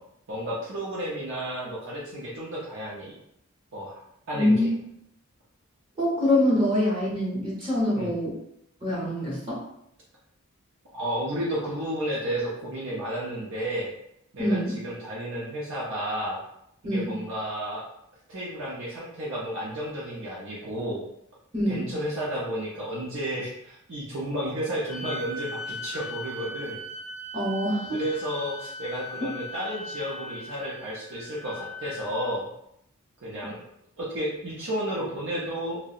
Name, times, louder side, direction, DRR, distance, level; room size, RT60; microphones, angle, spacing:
voice 1, 0.3-3.1 3.7-4.0 4.3-4.7 7.9-8.1 10.9-13.9 14.3-16.4 16.9-17.8 18.3-21.1 21.7-26.8 27.9-32.5 33.2-33.6 34.0-35.8, right 1 dB, 65° right, -6 dB, 0.5 m, -32 dB
voice 2, 4.3-4.7 6.0-8.3 8.8-9.6 14.4-14.7 16.8-17.2 21.5-21.9 27.3-28.0, left 1 dB, 25° right, -8 dB, 0.8 m, -25 dB
sound 1, 24.9-32.4, left 1 dB, 85° left, 0.5 m, -39 dB
2.7 x 2.0 x 2.3 m, 0.76 s
head